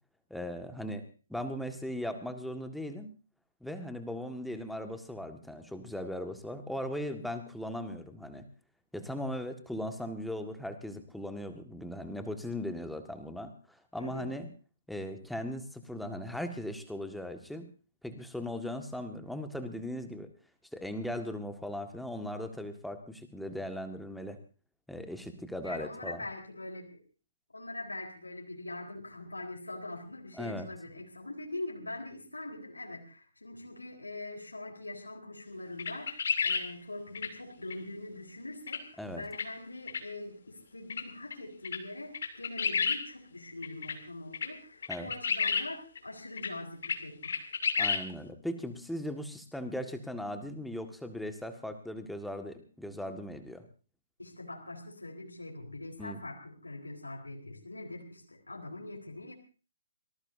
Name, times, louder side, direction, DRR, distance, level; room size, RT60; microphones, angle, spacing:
voice 1, 0.3-1.0 1.3-3.1 3.6-8.5 8.9-14.5 14.9-17.7 18.0-20.3 20.7-24.4 24.9-26.2 30.4-30.7 39.0-39.2 44.9-45.1 47.8-53.6 56.0-56.2, left 1 dB, ahead, 6 dB, 1.8 m, -38 dB
voice 2, 13.9-14.3 25.6-27.0 27.5-47.5 54.2-59.3, left 2 dB, 80° left, 0 dB, 4.1 m, -43 dB
sound 1, 35.8-36.6 37.1-37.3 37.7-37.8 38.7-38.8 39.3-39.5 39.9-40.0 40.9-41.0 41.3-41.4 41.6-41.8 42.1-43.0 43.6-43.9 44.3-44.5 44.8-45.7 46.0-46.1 46.4-46.5 46.8-47.0 47.2-48.0, left 6 dB, 55° left, 3.1 m, -30 dB
25.0 x 19.0 x 2.7 m, 0.37 s
figure-of-eight pair, 130°, 0 cm